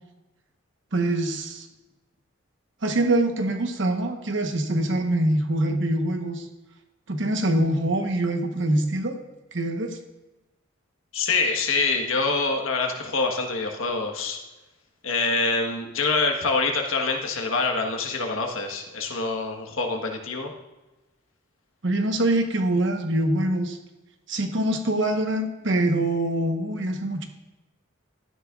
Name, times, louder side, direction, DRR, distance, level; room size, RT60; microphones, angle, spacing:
voice 1, 0.9-1.7 2.8-6.4 7.1-9.2 9.5-10.0 21.8-23.8 24.3-27.2, right 1 dB, 60° right, 5 dB, 1.1 m, -24 dB
voice 2, 11.1-14.4 15.0-20.5, left 3 dB, 80° left, 2 dB, 1.4 m, -25 dB
12.5 x 10.5 x 2.5 m, 1.1 s
head